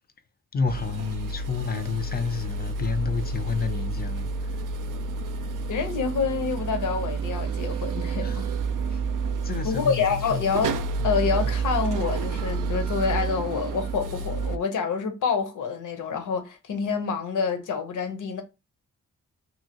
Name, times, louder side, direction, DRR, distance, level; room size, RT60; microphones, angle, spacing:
voice 1, 0.5-4.6 7.7-7.8 8.2-8.5 8.9-9.0 9.4-10.5 11.0-11.1 11.4-11.5, left 4 dB, 30° left, 0.4 m, -30 dB
sound 1, 0.7-14.6, right 4 dB, 90° right, 0.5 m, -29 dB
voice 2, 5.7-8.5 9.6-10.8 11.0-18.4, left 5 dB, 75° left, 0.8 m, -27 dB
2.9 x 2.7 x 2.8 m
wide cardioid pair, 135°, 31 cm